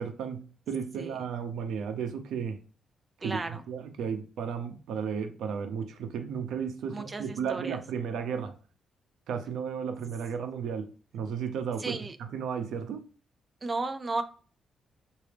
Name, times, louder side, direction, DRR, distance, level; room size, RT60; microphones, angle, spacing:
voice 1, 0.0-2.6 3.2-3.4 3.7-8.5 9.3-12.0 12.3-13.0, right 7 dB, 85° right, 0.7 m, -34 dB
voice 2, 3.2-3.6 6.9-7.8 11.8-12.2 13.6-14.2, right 3 dB, 20° right, 0.4 m, -34 dB
5.9 x 2.7 x 3.4 m
wide cardioid pair, 180°, 0 cm